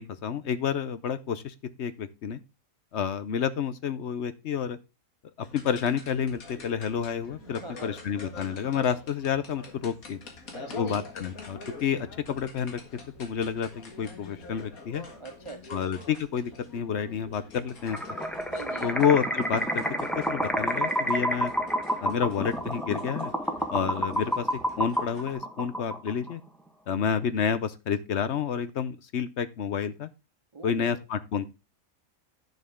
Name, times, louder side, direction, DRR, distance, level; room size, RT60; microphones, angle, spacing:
voice 1, 0.0-2.4 2.9-4.8 5.5-10.2 10.8-12.8 13.2-15.0 15.7-18.0 18.8-19.8 20.2-21.5 22.0-23.3 23.7-24.5 24.8-26.4 26.9-30.1 30.6-31.5, left 7 dB, 60° left, 0.9 m, -29 dB
sound 1, 5.4-25.3, left 3 dB, 85° left, 2.2 m, -46 dB
voice 2, 7.4-7.9 10.5-11.1 15.2-15.9 18.5-19.0 30.5-31.0, right 3 dB, 55° right, 0.3 m, -42 dB
sound 2, 17.8-26.3, right 1 dB, ahead, 1.1 m, -29 dB
10.5 x 6.6 x 3.6 m
omnidirectional pair, 1.5 m